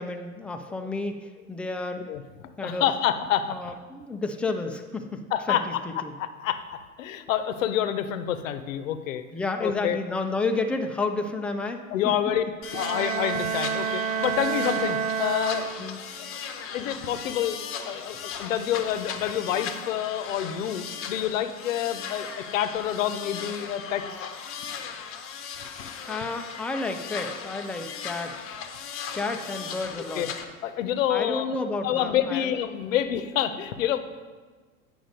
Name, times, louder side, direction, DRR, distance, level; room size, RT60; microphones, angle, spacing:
voice 1, 0.0-2.1 2.6-2.8 3.5-5.7 6.0-6.1 9.3-11.8 15.8-16.0 26.0-28.4 29.1-30.3 31.1-32.5, left 3 dB, 5° left, 5 dB, 0.3 m, -31 dB
voice 2, 2.1-3.6 5.3-5.7 6.2-6.6 7.0-9.2 9.6-10.0 11.9-12.4 12.7-15.7 16.7-17.6 17.9-24.3 25.6-25.9 30.1-30.3 30.6-31.5 31.8-34.0, left 10 dB, 65° left, 10 dB, 0.8 m, -28 dB
sound 1, 12.6-30.4, left 7 dB, 30° left, 0.9 m, -38 dB
Bowed string instrument, 12.7-16.2, right 7 dB, 75° right, 0.6 m, -29 dB
8.8 x 5.3 x 5.1 m, 1.4 s
hypercardioid pair, 85°, 41 cm